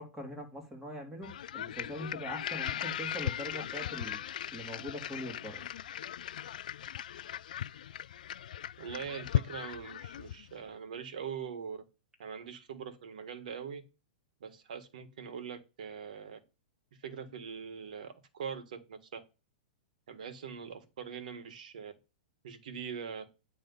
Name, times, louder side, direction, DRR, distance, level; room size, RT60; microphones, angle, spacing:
voice 1, 0.0-5.7, equal, 10° right, 1 dB, 3.0 m, -42 dB
sound 1, 1.2-10.5, left 11 dB, 75° left, 0.3 m, -38 dB
voice 2, 8.8-11.8 12.2-13.8 14.4-16.4 17.0-19.2 20.1-21.9 22.4-23.3, right 7 dB, 70° right, 7 dB, 1.7 m, -42 dB
9.3 x 3.5 x 5.5 m, 0.30 s
hypercardioid pair, 130°, 5 cm